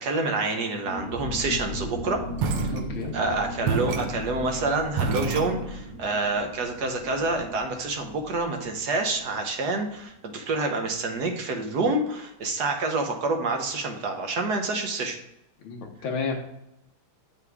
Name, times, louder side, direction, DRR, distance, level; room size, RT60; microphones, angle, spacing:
voice 1, 0.0-2.2 2.6-2.7 3.1-15.2, right 3 dB, 55° right, 4 dB, 1.3 m, -27 dB
sound 1, 0.8-10.3 10.5-10.6 10.9-11.2, left 1 dB, 5° right, 1.4 m, -37 dB
sound 2, 2.4-3.3 3.7-6.0, right 5 dB, 90° right, 1.7 m, -29 dB
voice 2, 2.7-3.1 15.6-16.4, left 4 dB, 70° left, 1 dB, 2.0 m, -31 dB
7.7 x 5.9 x 3.5 m, 0.85 s
omnidirectional pair, 2.4 m